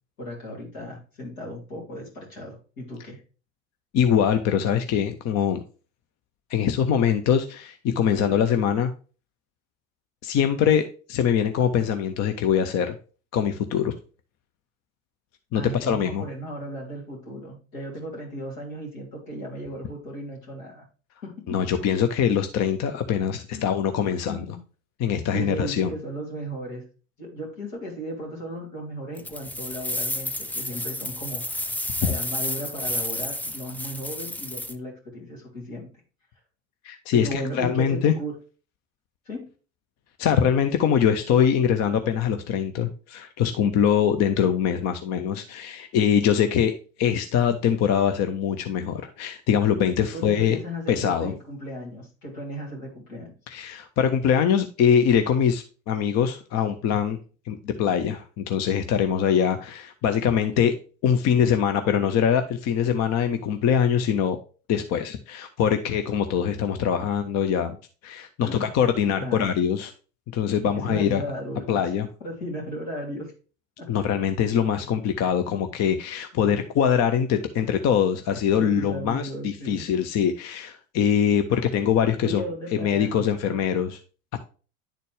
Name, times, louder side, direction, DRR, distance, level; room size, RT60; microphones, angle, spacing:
voice 1, 0.2-3.2 15.5-20.8 21.2-21.3 23.5-23.8 24.3-24.6 25.3-26.8 27.2-31.7 32.0-35.9 37.1-38.4 39.2-39.5 50.1-53.3 68.4-68.6 69.2-69.6 70.7-71.9 72.2-73.3 73.8-73.9 75.5-75.6 76.3-76.6 78.6-79.9 82.2-83.3, equal, 75° left, -1 dB, 3.1 m, -35 dB
voice 2, 3.9-5.6 6.5-8.9 10.2-13.0 13.3-13.9 15.5-16.2 21.5-24.4 25.0-25.9 36.8-38.1 40.2-50.6 50.9-51.3 53.5-57.2 57.5-60.8 61.0-64.4 64.7-67.8 68.0-69.9 70.3-71.2 71.7-72.1 73.9-82.4 82.8-84.0 84.3-84.4, left 8 dB, 40° left, 8 dB, 0.7 m, -23 dB
sound 1, 29.2-34.7, left 1 dB, 5° left, 0.4 m, -31 dB
10.0 x 4.2 x 3.2 m, 0.36 s
hypercardioid pair, 70°, 39 cm